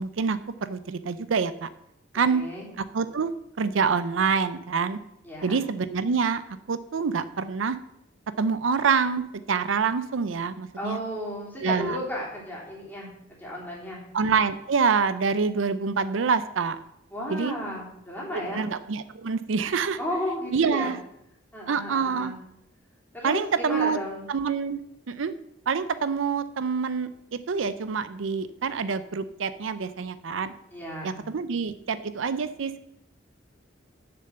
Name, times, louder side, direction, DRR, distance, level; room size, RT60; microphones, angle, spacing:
voice 1, 0.0-1.7 2.1-2.4 2.9-3.3 3.6-5.0 5.4-7.8 8.4-11.0 11.6-12.0 14.1-16.8 17.3-17.5 18.3-20.0 20.5-21.0 21.7-22.3 23.2-24.0 24.3-24.8 25.1-25.3 25.7-30.5 31.0-32.9, right 5 dB, 80° right, 13 dB, 0.5 m, -26 dB
voice 2, 2.3-2.7 5.2-5.6 10.8-14.0 17.1-18.6 20.0-20.9 21.5-22.4 23.1-24.3 30.7-31.2, left 1 dB, 10° left, -5 dB, 3.2 m, -34 dB
6.9 x 6.7 x 7.8 m, 0.78 s
head